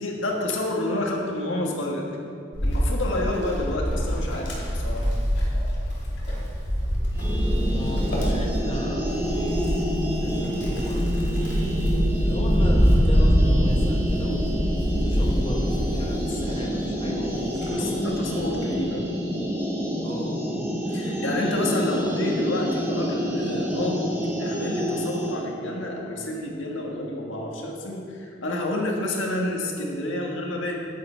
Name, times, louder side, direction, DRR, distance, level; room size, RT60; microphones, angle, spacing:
voice 1, 0.0-2.1 2.6-5.1 17.6-19.1 20.9-30.8, left 1 dB, 90° left, 0 dB, 1.6 m, -29 dB
Wind, 2.5-16.6 17.1-18.6, equal, 65° left, 2.6 m, -24 dB
ring oscillation, 7.1-25.4, equal, 15° right, 1.4 m, -28 dB
voice 2, 7.8-9.1 10.1-11.1 12.2-14.5 15.0-18.1 20.0-20.4, left 1 dB, 25° left, 0 dB, 0.9 m, -35 dB
10.5 x 9.6 x 4.5 m, 2.4 s
head